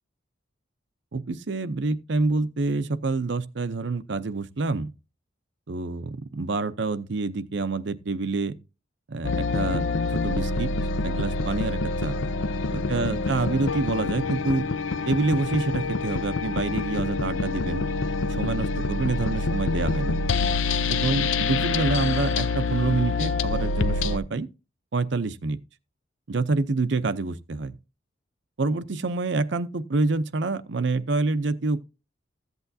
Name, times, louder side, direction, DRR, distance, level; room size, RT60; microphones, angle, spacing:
voice 1, 1.1-4.9 5.7-8.5 9.1-9.9 10.1-10.7 11.0-12.2 12.7-14.6 15.1-17.8 18.3-20.2 20.9-24.5 24.9-25.6 26.3-27.8 28.6-31.8, right 3 dB, 65° right, 0.6 m, -27 dB
sound 1, 9.2-24.2, left 3 dB, 85° left, 0.6 m, -26 dB
15.0 x 8.1 x 2.7 m
head